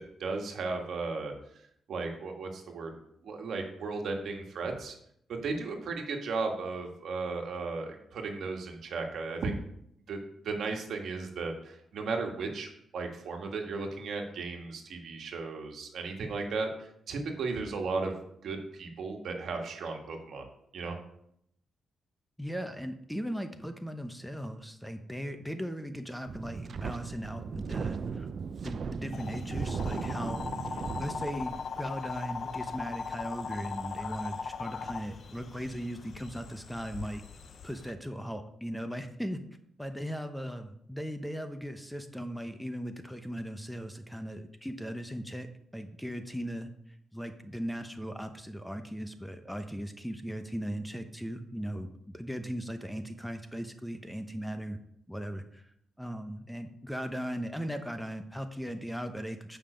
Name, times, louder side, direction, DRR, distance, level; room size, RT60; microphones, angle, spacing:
voice 1, 0.0-1.6 1.9-2.9 3.2-5.0 5.3-9.6 10.1-10.2 10.4-18.2 18.4-20.5 20.7-21.0, right 4 dB, 70° right, 3 dB, 1.7 m, -35 dB
voice 2, 22.4-28.3 28.6-30.5 31.0-37.2 37.6-39.4 39.8-45.5 45.7-54.8 55.1-55.7 56.0-59.6, equal, ahead, 7 dB, 0.8 m, -38 dB
Wind, 26.3-31.9, right 5 dB, 55° right, 0.5 m, -37 dB
sound 1, 29.1-37.9, left 5 dB, 60° left, 0.7 m, -39 dB
8.6 x 5.7 x 5.1 m, 0.72 s
cardioid pair, 80°, 0 cm